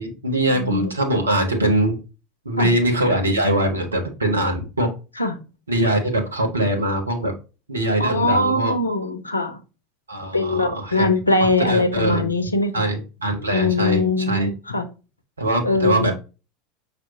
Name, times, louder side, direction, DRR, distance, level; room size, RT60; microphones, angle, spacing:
voice 1, 0.0-2.0 2.4-4.9 5.7-7.3 7.7-8.7 10.1-11.1 11.4-12.2 12.7-14.5 15.4-16.1, right 1 dB, 80° right, 1.2 m, -22 dB
voice 2, 0.5-0.9 2.6-2.7 5.2-5.4 8.0-9.6 10.3-12.9 13.5-14.8 15.6-16.1, left 2 dB, 85° left, 0.8 m, -21 dB
6.0 x 3.2 x 2.7 m
figure-of-eight pair, 80°, 0 cm